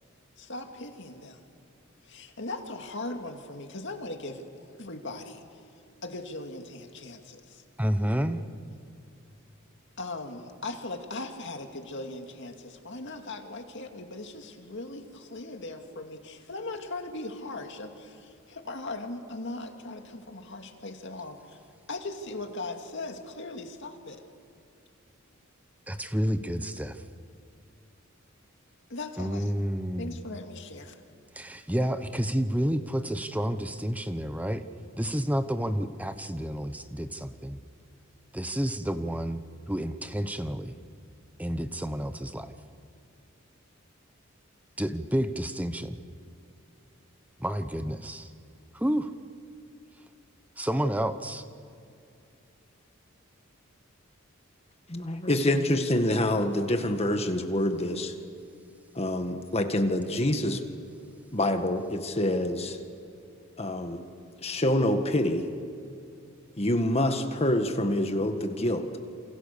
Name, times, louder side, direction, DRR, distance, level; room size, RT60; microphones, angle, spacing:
voice 1, 0.4-1.4 2.0-5.4 6.0-7.6 10.0-21.6 21.9-24.2 28.9-29.5 30.0-31.0, left 2 dB, 60° left, 4 dB, 2.3 m, -39 dB
voice 2, 7.8-8.4 25.9-27.0 29.2-30.1 31.4-34.6 35.0-37.6 38.3-40.7 41.4-42.5 44.8-46.0 47.4-48.3 48.7-49.1 50.6-51.4, equal, 5° right, 10 dB, 1.0 m, -30 dB
voice 3, 54.9-58.1 58.9-60.6 61.3-62.8 63.6-64.0 64.4-65.5 66.6-68.9, left 1 dB, 30° left, 6 dB, 1.7 m, -26 dB
28.0 x 28.0 x 6.8 m, 2.5 s
head